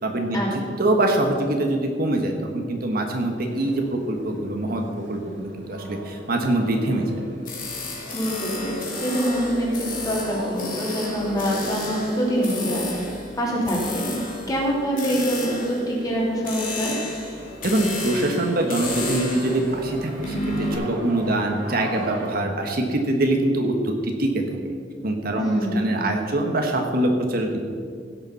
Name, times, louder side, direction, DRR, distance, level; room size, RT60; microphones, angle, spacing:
voice 1, 0.0-0.4 0.8-4.8 5.1-7.2 17.6-24.4 25.0-27.6, right 1 dB, 55° right, 3 dB, 1.3 m, -24 dB
sound 1, 3.4-22.4, equal, 75° right, 2.6 m, -38 dB
sound 2, 7.4-20.7, left 2 dB, 50° left, 2.9 m, -33 dB
voice 2, 8.1-14.2 14.5-16.9 25.4-25.8, equal, 20° left, -4 dB, 3.1 m, -25 dB
16.5 x 6.9 x 5.7 m, 2.1 s
head